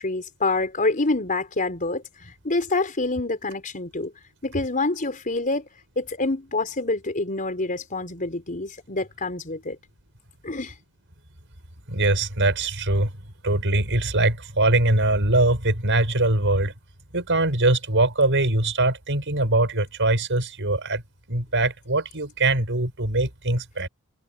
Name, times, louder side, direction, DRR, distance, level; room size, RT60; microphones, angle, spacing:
voice 1, 0.0-4.1 4.4-5.7 6.0-9.8 10.4-10.7, left 2 dB, 35° left, 4.5 m, -27 dB
voice 2, 11.9-13.1 13.4-16.7 17.1-21.0 21.3-23.9, right 2 dB, 55° right, 6.3 m, -22 dB
head